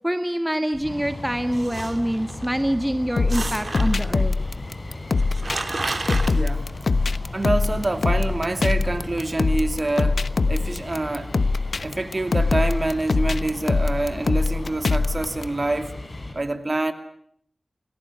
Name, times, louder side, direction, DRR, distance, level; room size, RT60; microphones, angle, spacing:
voice 1, 0.0-4.3, equal, 10° right, 8 dB, 1.8 m, -25 dB
sound 1, 0.7-16.3, left 2 dB, 50° left, 7.9 m, -37 dB
sound 2, 1.5-2.4 3.3-4.2 4.9-5.0 5.2-6.3, right 3 dB, 55° right, 3.1 m, -31 dB
sound 3, 3.2-15.4, left 3 dB, 75° left, 1.0 m, -23 dB
voice 2, 6.3-6.7 7.3-10.2 10.5-11.3 11.8-15.9 16.3-16.9, right 2 dB, 40° right, 8 dB, 2.8 m, -26 dB
28.5 x 19.5 x 9.6 m, 0.67 s
wide cardioid pair, 70°, 0 cm